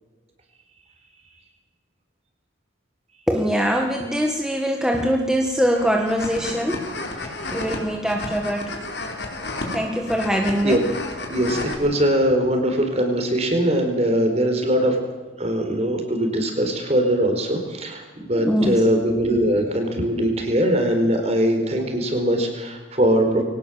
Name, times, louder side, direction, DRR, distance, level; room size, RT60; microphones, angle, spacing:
voice 1, 3.3-6.8 7.5-8.9 9.7-10.8 18.3-18.8, equal, 5° right, 1 dB, 1.7 m, -22 dB
sound 1, 5.7-11.7, left 2 dB, 60° left, 4.3 m, -32 dB
voice 2, 11.3-15.0 15.4-23.4, equal, 35° right, 5 dB, 4.3 m, -21 dB
23.0 x 18.5 x 7.6 m, 1.2 s
head